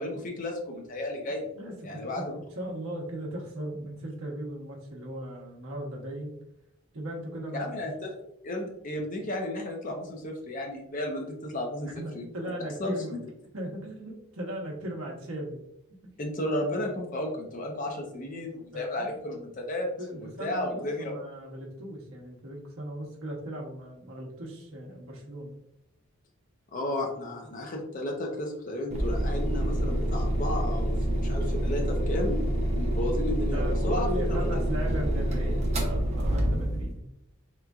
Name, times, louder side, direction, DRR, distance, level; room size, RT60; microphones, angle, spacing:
voice 1, 0.0-1.5 1.8-2.4 7.5-11.9 12.1-12.3 12.8-13.0 16.2-21.1 26.7-32.4 32.7-34.6, left 1 dB, 35° left, 2 dB, 0.6 m, -33 dB
voice 2, 1.6-6.3 6.9-7.7 11.8-13.2 13.5-15.6 18.7-19.3 20.0-25.6 33.5-37.0, right 1 dB, 75° right, -1 dB, 0.9 m, -38 dB
sound 1, 28.9-36.9, right 1 dB, 30° right, 0.6 m, -27 dB
3.6 x 3.0 x 2.3 m, 0.80 s
head